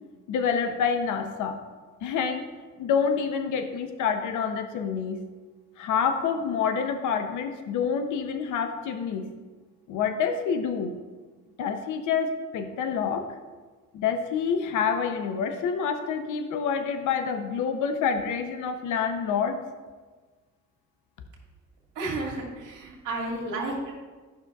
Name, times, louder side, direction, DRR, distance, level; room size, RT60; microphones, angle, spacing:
voice 1, 0.3-1.6 2.0-2.4 2.8-5.2 5.8-9.3 9.9-10.9 11.6-13.3 13.9-19.6, left 6 dB, 80° left, 7 dB, 0.7 m, -27 dB
voice 2, 22.0-23.9, right 2 dB, 85° right, -2 dB, 1.7 m, -32 dB
10.0 x 5.9 x 2.3 m, 1.4 s
cardioid pair, 90°, 30 cm